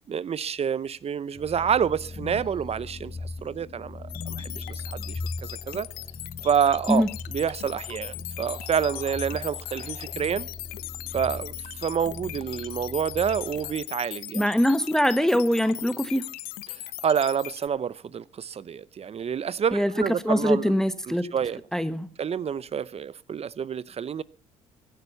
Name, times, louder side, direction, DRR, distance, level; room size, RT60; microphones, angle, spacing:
voice 1, 0.1-5.9 6.4-7.0 7.3-10.5 11.1-11.5 11.8-14.4 16.7-20.7 21.1-21.6 22.2-24.2, right 7 dB, 40° right, 0.7 m, -28 dB
sound 1, 1.3-13.8, left 3 dB, 35° left, 2.3 m, -39 dB
sound 2, 4.1-17.7, left 17 dB, 75° left, 0.7 m, -39 dB
voice 2, 14.3-16.2 19.7-19.9 20.2-21.3 21.7-22.1, equal, 5° left, 1.1 m, -23 dB
16.0 x 10.5 x 5.5 m
supercardioid pair, 60°, 15 cm